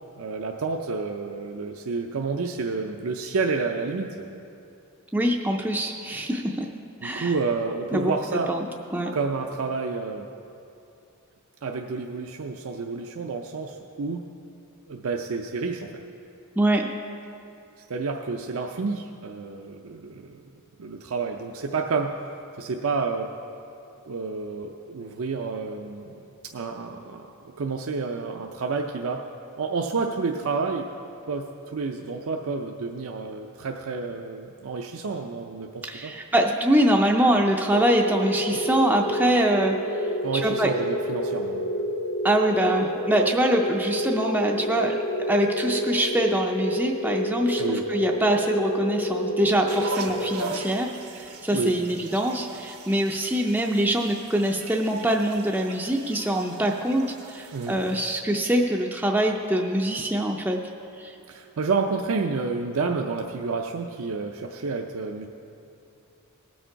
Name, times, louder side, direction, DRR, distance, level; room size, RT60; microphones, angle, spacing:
voice 1, 0.2-4.3 7.0-8.5 9.1-10.3 11.6-14.2 14.9-16.0 17.9-20.4 20.8-22.1 22.5-23.3 24.0-29.2 29.6-30.8 31.3-36.1 40.2-41.7 47.6-47.8 51.5-51.8 57.5-57.8 61.3-65.3, right 4 dB, 70° right, 3 dB, 0.5 m, -29 dB
voice 2, 5.1-6.7 7.0-7.3 7.9-8.7 8.9-9.1 16.6-16.9 35.8-40.1 40.3-40.7 42.2-44.9 45.3-60.6 61.0-61.1, right 1 dB, 10° right, 0 dB, 0.4 m, -24 dB
sound 1, 37.7-50.9, equal, 80° left, 1.6 m, -29 dB
sound 2, 49.7-58.0, right 3 dB, 85° right, 1.0 m, -40 dB
18.0 x 6.4 x 4.5 m, 2.7 s
head